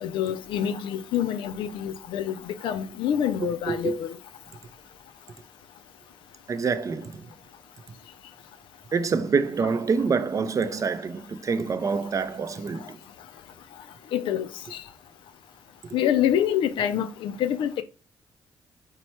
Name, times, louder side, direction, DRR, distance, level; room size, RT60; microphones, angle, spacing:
voice 1, 0.0-4.1 14.1-14.5 15.9-17.8, left 10 dB, 85° left, 0.4 m, -26 dB
voice 2, 3.4-4.0 6.5-7.2 8.9-13.0, right 5 dB, 40° right, 0.4 m, -26 dB
4.2 x 2.2 x 4.2 m
cardioid pair, 70°, 8 cm